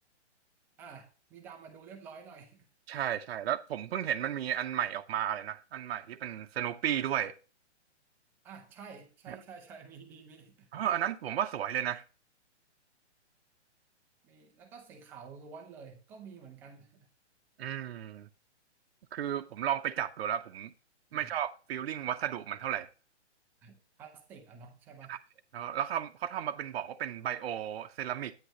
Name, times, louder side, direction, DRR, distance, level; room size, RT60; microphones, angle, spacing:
voice 1, 0.8-2.7 8.4-10.7 14.2-17.1 21.1-21.4 23.6-25.2, right 5 dB, 5° right, 0.4 m, -50 dB
voice 2, 2.9-7.3 10.7-12.0 17.6-18.3 19.1-20.7 21.1-22.9 25.1-25.2 25.5-28.3, right 10 dB, 60° right, 0.7 m, -33 dB
9.0 x 8.5 x 2.8 m
hypercardioid pair, 135°, 35 cm